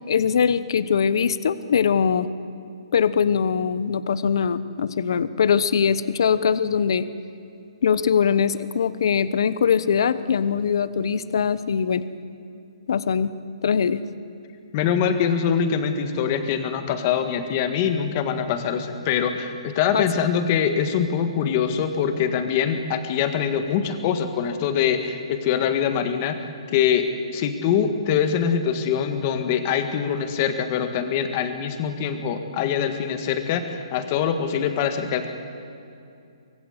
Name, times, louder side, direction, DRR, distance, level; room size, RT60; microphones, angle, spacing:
voice 1, 0.1-2.3 2.9-7.1 7.8-12.0 12.9-13.3 13.6-14.0 19.9-20.1, left 7 dB, 50° left, 14 dB, 1.0 m, -22 dB
voice 2, 14.7-26.4 26.7-35.3, left 7 dB, 25° left, 7 dB, 1.6 m, -23 dB
25.0 x 22.0 x 8.1 m, 2.6 s
hypercardioid pair, 175°, 3 cm